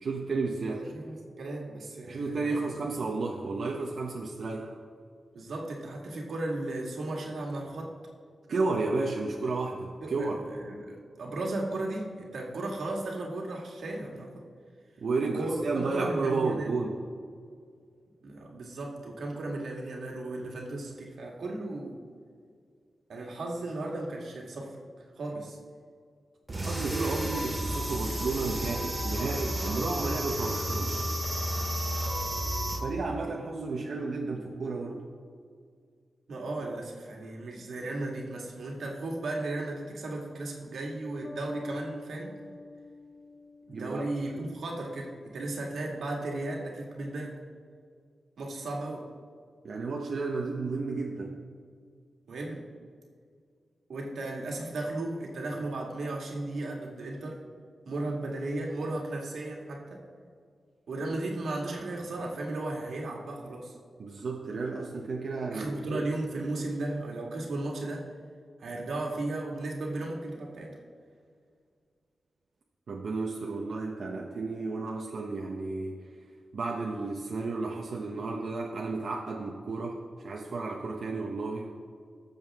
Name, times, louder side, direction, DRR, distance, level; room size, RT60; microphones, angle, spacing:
voice 1, 0.0-0.8 2.1-4.8 8.5-10.4 15.0-17.0 26.5-31.0 32.8-35.1 43.7-44.0 44.4-44.5 49.6-51.4 64.0-66.1 72.9-76.1 76.5-81.7, right 3 dB, 65° right, -1 dB, 1.0 m, -32 dB
voice 2, 0.7-2.6 5.3-7.9 10.0-14.4 15.3-16.7 18.2-22.0 23.1-24.8 25.2-25.6 36.3-42.4 43.7-47.4 48.4-49.1 52.3-52.7 53.9-57.4 57.9-60.0 60.9-63.7 65.5-68.1 68.6-70.8, right 2 dB, 85° right, -1 dB, 2.0 m, -35 dB
sound 1, 26.5-32.8, right 1 dB, 25° right, 3.0 m, -32 dB
Bass guitar, 41.2-44.8, left 2 dB, 25° left, 0.8 m, -45 dB
18.5 x 7.3 x 3.6 m, 2.1 s
wide cardioid pair, 120°, 0 cm